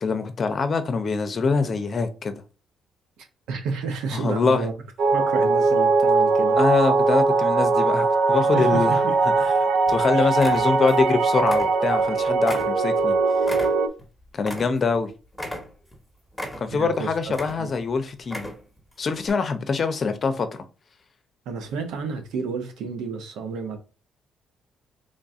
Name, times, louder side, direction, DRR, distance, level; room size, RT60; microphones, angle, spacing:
voice 1, 0.0-2.3 4.1-4.7 6.6-9.0 9.9-13.2 14.3-15.1 16.6-18.5 19.0-20.6, left 4 dB, 45° left, 0.7 m, -24 dB
voice 2, 3.2-4.7 5.1-6.6 8.5-9.1 10.1-10.3 16.7-17.1 17.6-17.7 21.5-23.8, right 4 dB, 90° right, 0.8 m, -30 dB
sound 1, 5.0-13.9, right 4 dB, 70° right, 0.4 m, -20 dB
sound 2, 8.8-9.5 9.9-10.0 10.3-11.1 11.4-12.1 12.4-15.0 15.3-16.0 16.3-16.9 17.3-17.9 18.2-18.8 19.2-19.3, left 1 dB, 5° left, 1.3 m, -36 dB
3.7 x 2.6 x 3.6 m
cardioid pair, 90°, 0 cm